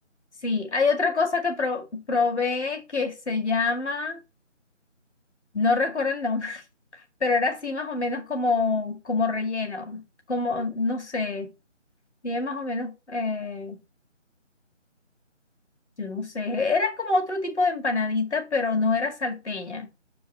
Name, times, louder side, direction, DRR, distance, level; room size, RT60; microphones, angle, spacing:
voice 1, 0.4-4.2 5.5-6.6 7.2-10.0 10.3-11.5 12.2-13.8 16.0-19.9, left 3 dB, 65° left, 2.2 m, -26 dB
6.5 x 4.6 x 4.1 m
figure-of-eight pair, 160°, 37 cm